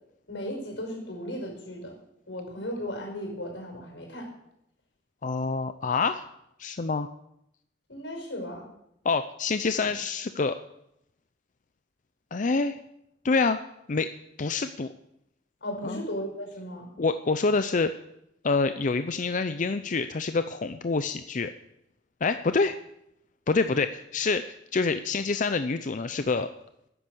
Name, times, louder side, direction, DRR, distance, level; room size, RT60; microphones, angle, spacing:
voice 1, 0.3-1.9 2.3-4.3 7.9-8.7 15.6-16.9, equal, 85° left, 2 dB, 5.4 m, -36 dB
voice 2, 5.2-6.2 6.6-7.1 9.0-10.6 12.3-12.8 13.2-13.6 13.9-14.1 14.4-14.9 15.8-16.0 17.0-17.9 18.4-21.5 22.2-22.8 23.5-26.5, left 4 dB, 45° left, 10 dB, 0.5 m, -26 dB
13.5 x 10.0 x 6.3 m, 0.79 s
head